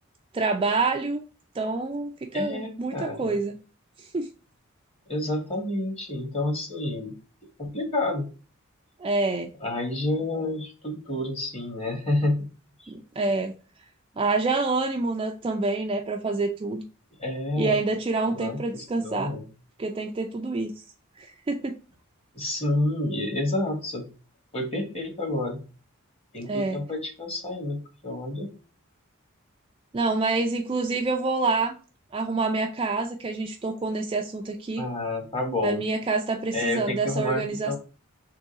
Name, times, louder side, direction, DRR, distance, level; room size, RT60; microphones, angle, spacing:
voice 1, 0.3-1.3 1.5-3.6 4.0-4.3 9.0-9.5 12.9-13.5 14.2-16.8 17.6-19.3 19.8-20.7 21.2-21.8 26.4-26.8 29.9-31.8 32.1-34.9 35.6-37.8, right 3 dB, 25° right, 0.3 m, -27 dB
voice 2, 2.3-3.4 5.1-7.1 7.6-8.3 9.6-12.5 12.8-12.9 17.2-17.8 18.3-19.5 22.3-24.1 24.5-25.6 26.3-28.5 34.8-35.8 36.5-37.8, left 1 dB, 30° left, 1.2 m, -29 dB
3.6 x 3.0 x 3.9 m
head